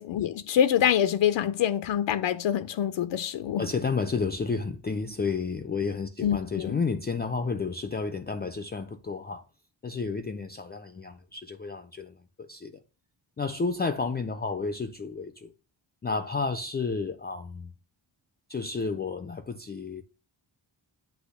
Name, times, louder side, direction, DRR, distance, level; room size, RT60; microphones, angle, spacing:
voice 1, 0.0-3.7 6.2-6.8, left 10 dB, 75° left, 0.6 m, -25 dB
voice 2, 3.6-9.4 9.8-12.2 12.5-12.8 13.4-15.5 16.0-17.7 18.5-20.0, left 4 dB, 25° left, 0.4 m, -31 dB
8.2 x 3.0 x 6.2 m
wide cardioid pair, 145°, 45 cm